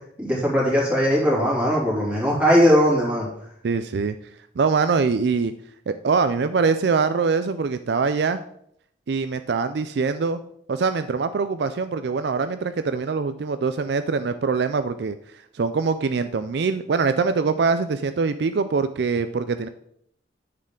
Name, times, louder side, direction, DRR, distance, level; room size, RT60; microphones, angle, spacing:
voice 1, 0.2-3.3, equal, 5° right, -5 dB, 3.0 m, -19 dB
voice 2, 3.6-4.2 4.6-5.5 5.9-8.4 9.1-10.4 10.7-15.2 15.5-19.7, right 4 dB, 60° right, 10 dB, 0.4 m, -23 dB
9.3 x 6.6 x 3.8 m, 0.70 s
head